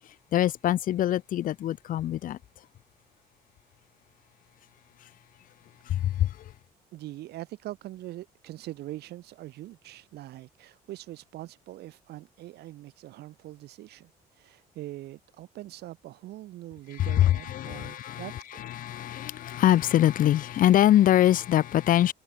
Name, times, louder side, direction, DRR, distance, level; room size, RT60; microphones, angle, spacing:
voice 1, 0.3-2.4 5.9-6.3 17.0-18.2 18.8-22.1, left 12 dB, 55° left, 0.6 m, -23 dB
voice 2, 5.9-6.3 6.9-18.6, right 15 dB, 75° right, 3.4 m, -43 dB
cardioid pair, 110°, 17 cm